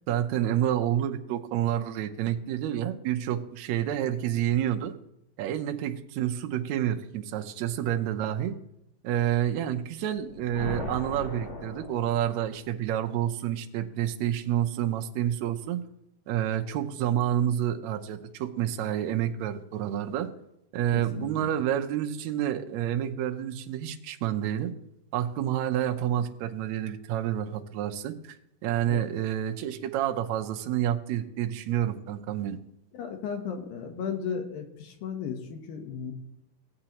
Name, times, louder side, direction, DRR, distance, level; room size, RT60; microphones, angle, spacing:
voice 1, 0.1-4.9 5.4-8.6 9.0-15.8 16.3-20.3 20.7-24.7 25.1-32.6, right 11 dB, 75° right, 5 dB, 1.6 m, -29 dB
sound 1, 10.1-12.7, equal, 30° left, 2.0 m, -38 dB
voice 2, 20.9-21.5 28.9-29.1 32.9-36.1, left 6 dB, 80° left, 4 dB, 2.8 m, -35 dB
18.0 x 8.7 x 3.0 m, 0.79 s
omnidirectional pair, 4.1 m